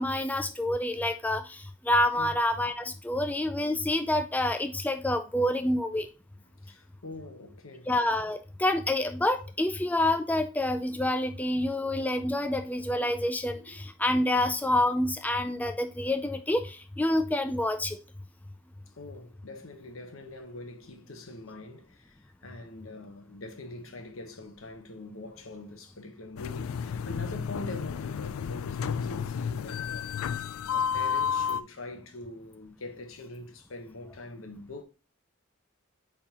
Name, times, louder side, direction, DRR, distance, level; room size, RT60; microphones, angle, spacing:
voice 1, 0.0-6.1 7.9-18.0, left 1 dB, 10° left, 0.4 m, -28 dB
voice 2, 6.4-7.9 13.5-13.9 14.3-14.4 18.9-30.4 30.7-34.8, left 2 dB, 75° left, 1.2 m, -44 dB
sound 1, 26.4-31.6, left 7 dB, 90° left, 0.3 m, -31 dB
8.3 x 3.8 x 3.0 m
head